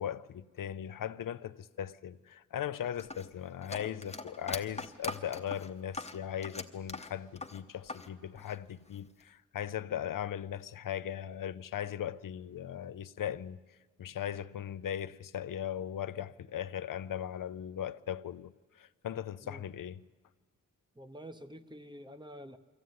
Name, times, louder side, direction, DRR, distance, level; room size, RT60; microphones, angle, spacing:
voice 1, 0.0-13.6 14.0-18.5 18.8-20.0, left 10 dB, 85° left, 0.6 m, -38 dB
sound 1, 3.0-8.1 8.4-9.2, left 3 dB, 20° left, 0.9 m, -41 dB
voice 2, 21.0-22.6, equal, 15° right, 0.8 m, -48 dB
23.5 x 14.5 x 9.4 m
wide cardioid pair, 150°, 32 cm